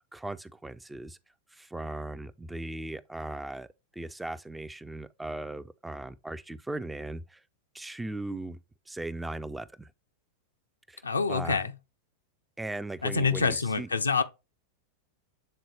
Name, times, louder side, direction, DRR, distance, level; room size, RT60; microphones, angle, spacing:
voice 1, 0.1-1.2 1.5-3.7 3.9-7.4 7.7-8.6 8.9-9.9 10.9-11.0 11.3-11.6 12.6-13.9, right 2 dB, 5° right, 0.3 m, -38 dB
voice 2, 11.0-11.7 13.0-14.2, left 4 dB, 75° left, 0.5 m, -26 dB
7.7 x 3.8 x 3.2 m
figure-of-eight pair, 90°, 0 cm